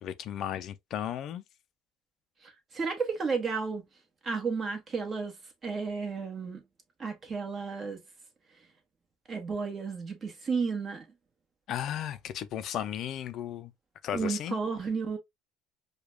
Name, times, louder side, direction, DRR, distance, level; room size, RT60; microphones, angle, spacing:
voice 1, 0.0-1.4 11.7-13.7 14.0-14.6, left 10 dB, 55° left, 0.4 m, -35 dB
voice 2, 2.4-3.8 4.2-5.4 5.6-6.6 7.0-8.0 9.3-11.0 14.1-15.2, right 5 dB, 30° right, 1.3 m, -32 dB
4.8 x 2.3 x 2.3 m
supercardioid pair, 105°, 0 cm